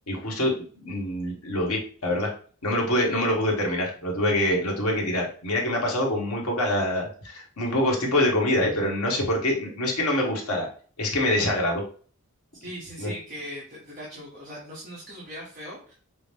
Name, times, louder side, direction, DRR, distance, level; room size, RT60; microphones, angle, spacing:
voice 1, 0.1-2.3 2.6-10.7 11.0-11.8 13.0-13.1, left 1 dB, 80° left, -1 dB, 1.3 m, -25 dB
voice 2, 12.5-15.9, equal, 40° right, -5 dB, 1.2 m, -40 dB
5.9 x 2.1 x 3.4 m, 0.42 s
head